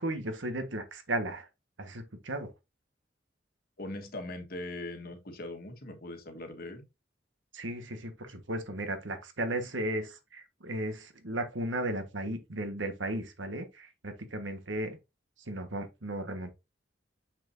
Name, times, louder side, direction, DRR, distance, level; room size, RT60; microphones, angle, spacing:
voice 1, 0.0-1.5 1.8-2.5 7.5-15.0 15.5-16.5, right 1 dB, 85° right, 1.4 m, -35 dB
voice 2, 3.8-6.9, left 1 dB, 55° left, 1.5 m, -40 dB
7.0 x 5.9 x 2.7 m
head